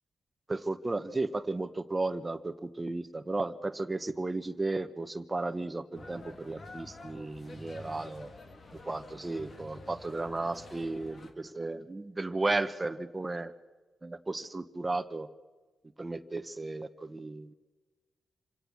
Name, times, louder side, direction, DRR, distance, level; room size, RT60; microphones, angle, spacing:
voice 1, 0.5-8.3 8.9-13.5 14.0-15.3 16.0-17.5, right 2 dB, 25° right, 11 dB, 1.1 m, -34 dB
sound 1, 5.9-11.3, left 2 dB, 55° left, 2.9 m, -49 dB
27.0 x 17.0 x 6.3 m, 1.3 s
cardioid pair, 65°, 0 cm